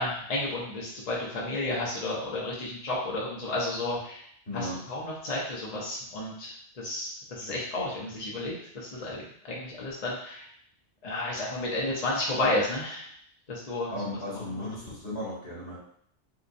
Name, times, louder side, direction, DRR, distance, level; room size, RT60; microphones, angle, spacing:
voice 1, 0.0-4.2 4.5-10.4 11.0-13.1 13.5-13.9, left 2 dB, 40° left, -5 dB, 0.8 m, -32 dB
voice 2, 4.5-4.8 13.9-15.8, left 1 dB, 70° left, -6 dB, 1.6 m, -35 dB
3.7 x 2.9 x 2.6 m, 0.66 s
omnidirectional pair, 1.2 m